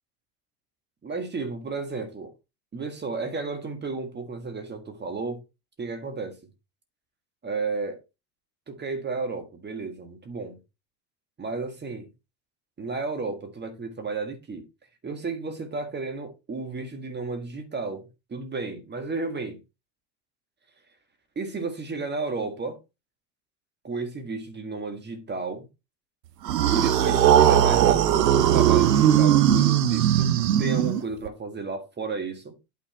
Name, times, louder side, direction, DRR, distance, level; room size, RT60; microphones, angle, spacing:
voice 1, 1.0-2.3 2.7-5.4 5.8-6.4 7.4-8.0 8.7-10.6 11.4-12.1 12.8-14.7 15.0-19.6 21.4-22.8 23.8-25.7 26.7-32.6, right 3 dB, 20° right, 1.7 m, -33 dB
sound 1, 26.5-31.3, right 10 dB, 80° right, 1.1 m, -19 dB
9.1 x 4.3 x 4.3 m
hypercardioid pair, 85°, 48 cm